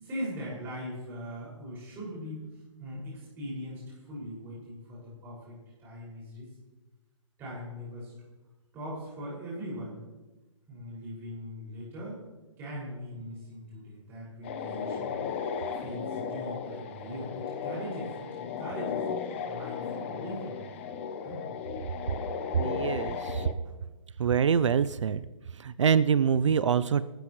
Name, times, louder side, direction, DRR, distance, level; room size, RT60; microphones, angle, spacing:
voice 1, 0.0-2.4 2.8-6.5 7.4-8.1 8.7-10.0 10.7-12.2 12.6-15.2 15.7-19.0 19.5-20.9 21.2-21.5, equal, 15° right, -7 dB, 6.0 m, -40 dB
sound 1, 14.4-23.5, left 6 dB, 20° left, 0.8 m, -35 dB
voice 2, 22.5-23.5 24.2-25.2 25.6-27.0, right 7 dB, 65° right, 15 dB, 0.6 m, -25 dB
27.0 x 13.0 x 3.2 m, 1.1 s
hypercardioid pair, 170°, 17 cm